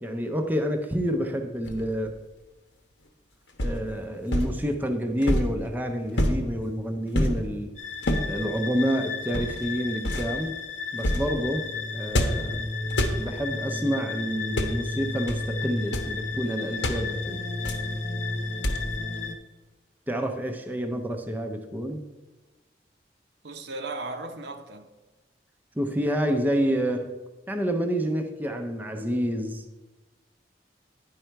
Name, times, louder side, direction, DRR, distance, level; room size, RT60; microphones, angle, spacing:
voice 1, 0.0-2.1 3.6-7.7 8.3-10.5 10.9-12.7 13.1-17.4 20.1-22.0 25.8-27.2 27.5-29.6, equal, 10° right, 0.5 m, -28 dB
sound 1, 1.6-2.1 3.6-3.9 4.3-4.6 5.2-5.6 6.2-6.5 7.2-7.5 8.0-8.3 9.3-9.7 10.0-10.3 11.0-11.3 12.1-12.5 12.9-13.2 14.4-14.8 15.3-15.4 15.8-16.1 16.8-17.1 17.6-17.9 18.6-19.0, equal, 85° left, 1.0 m, -27 dB
sound 2, 7.8-19.3, left 3 dB, 40° left, 0.7 m, -33 dB
voice 2, 23.4-24.9, right 2 dB, 70° right, 0.8 m, -36 dB
10.0 x 5.5 x 4.5 m
head